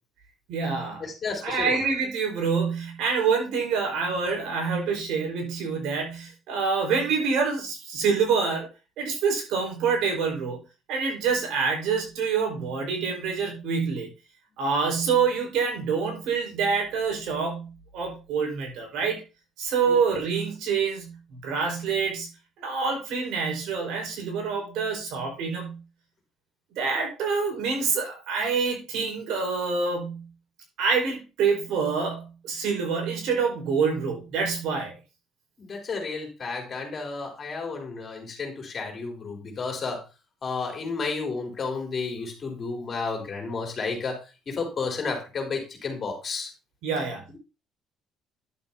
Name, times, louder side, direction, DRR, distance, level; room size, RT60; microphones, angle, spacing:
voice 1, 0.5-1.0 1.4-8.7 9.0-10.6 10.9-14.1 14.6-19.2 19.6-22.3 22.6-25.8 26.8-30.3 30.8-34.9 46.8-47.2, right 5 dB, 80° right, 1 dB, 4.9 m, -26 dB
voice 2, 1.0-1.8 19.9-20.0 35.6-40.0 40.4-46.5, left 4 dB, 35° left, 2 dB, 3.7 m, -32 dB
11.0 x 7.7 x 2.9 m, 0.29 s
cardioid pair, 110°, 0 cm